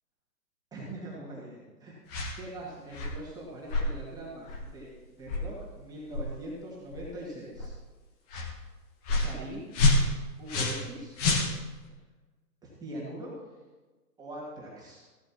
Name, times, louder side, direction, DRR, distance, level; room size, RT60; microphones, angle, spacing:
voice 1, 0.7-1.9 2.4-4.9 5.2-7.7 9.1-9.7 10.4-11.2 12.6-13.3 14.2-15.0, right 1 dB, 10° right, -6 dB, 2.1 m, -42 dB
sound 1, 2.1-2.4 2.9-3.2 3.7-3.9 4.5-4.7 5.3-5.5 6.1-6.3 6.9-7.1 7.6-7.7 8.3-8.5 9.1-9.3 9.7-10.9 11.2-11.9, left 2 dB, 25° left, 1.3 m, -27 dB
14.5 x 12.5 x 3.0 m, 1.3 s
hypercardioid pair, 145°, 48 cm